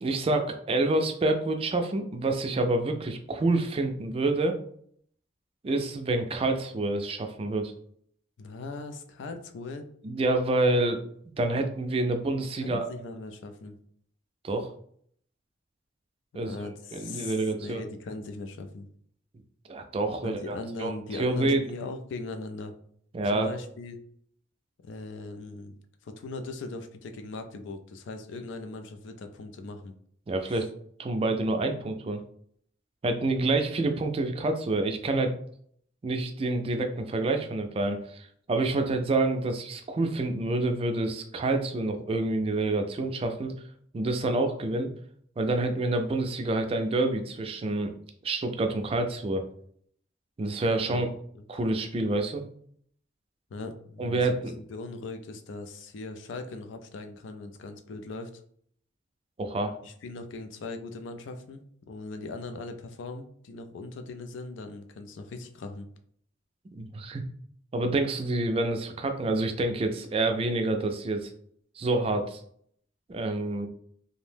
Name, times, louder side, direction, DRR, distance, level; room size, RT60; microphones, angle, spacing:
voice 1, 0.0-4.6 5.6-7.7 10.0-11.0 11.4-12.9 14.4-14.7 16.3-16.5 16.9-17.9 19.7-21.6 23.1-23.5 30.3-30.7 31.0-32.2 33.0-35.3 36.0-43.5 43.9-44.9 45.4-47.9 48.2-49.4 50.4-51.1 51.5-52.4 54.0-54.5 59.4-59.8 66.7-67.2 67.7-71.3 71.8-72.4 73.1-73.7, right 2 dB, 30° right, 6 dB, 0.3 m, -27 dB
voice 2, 8.4-9.9 12.6-13.8 16.4-18.9 20.2-22.7 23.3-24.0 24.8-25.7 26.0-29.9 30.5-30.7 50.7-51.1 51.3-51.4 53.5-54.3 54.6-58.4 59.8-65.9, left 3 dB, 75° left, 7 dB, 0.4 m, -39 dB
2.6 x 2.1 x 3.2 m, 0.63 s
head